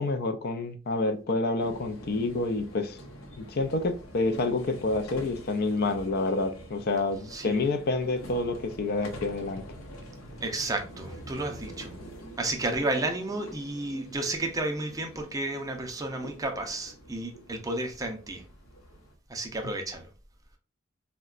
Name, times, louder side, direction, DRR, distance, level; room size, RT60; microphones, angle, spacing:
voice 1, 0.0-3.0 3.4-9.6, left 3 dB, 50° left, 0.4 m, -28 dB
sound 1, 1.6-19.1, equal, 80° left, 0.7 m, -46 dB
voice 2, 7.3-7.6 10.4-12.0 12.4-18.4 19.3-20.1, right 2 dB, 15° right, 0.5 m, -32 dB
3.8 x 2.1 x 2.4 m
head